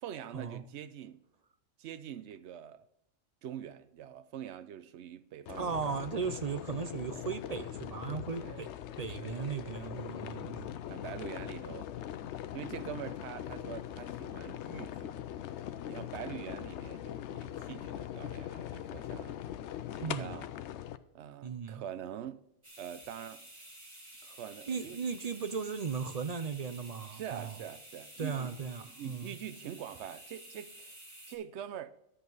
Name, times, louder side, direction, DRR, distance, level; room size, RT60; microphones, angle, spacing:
voice 1, 0.0-1.2 1.8-2.9 3.4-6.0 8.4-8.6 9.2-9.4 10.9-11.9 12.5-15.2 15.9-19.4 19.9-20.5 21.1-22.4 22.8-23.4 24.2-25.0 27.1-28.5 29.0-30.9 31.3-31.9, right 10 dB, 80° right, 0.9 m, -44 dB
sound 1, 5.5-21.0, left 11 dB, 85° left, 0.9 m, -41 dB
voice 2, 5.6-8.7 9.0-10.8 20.0-20.4 21.4-21.8 24.7-27.6 28.2-29.3, right 5 dB, 50° right, 0.5 m, -37 dB
sound 2, 22.6-31.4, right 1 dB, 25° right, 2.0 m, -52 dB
11.0 x 7.9 x 4.0 m
omnidirectional pair, 1.1 m